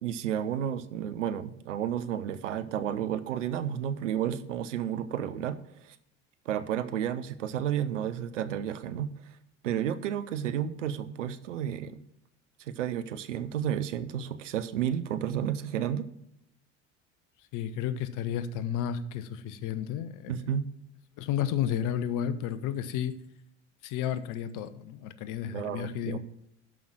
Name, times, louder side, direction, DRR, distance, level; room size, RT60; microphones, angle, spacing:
voice 1, 0.0-6.0 6.5-9.1 9.6-12.0 12.7-16.1 20.3-20.7 25.5-26.2, right 9 dB, 85° right, 0.8 m, -32 dB
voice 2, 17.5-20.3 21.2-23.1 23.8-26.2, left 9 dB, 60° left, 1.0 m, -32 dB
12.5 x 5.6 x 6.1 m
hypercardioid pair, 70°, 36 cm